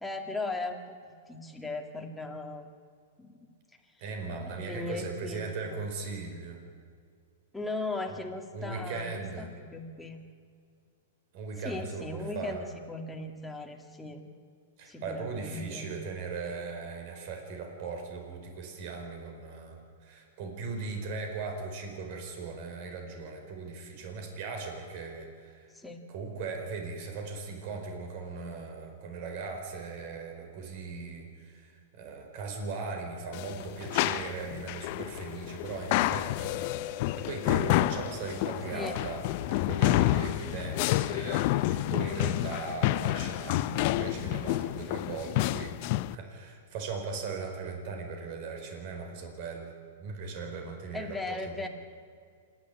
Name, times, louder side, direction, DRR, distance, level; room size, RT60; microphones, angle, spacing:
voice 1, 0.0-2.7 3.2-3.5 4.3-5.8 7.5-10.3 11.6-14.3 14.9-16.0 25.7-26.1 38.7-39.0 50.9-51.7, left 2 dB, 5° left, 1 dB, 2.1 m, -38 dB
voice 2, 4.0-6.6 8.1-8.2 8.5-9.5 11.3-12.6 14.8-25.7 26.1-45.8 46.1-49.7 50.0-51.7, right 4 dB, 50° right, 4 dB, 4.7 m, -38 dB
sound 1, 33.3-46.1, left 17 dB, 45° left, 0.6 m, -29 dB
27.0 x 11.5 x 8.5 m, 2.2 s
hypercardioid pair, 140°, 0 cm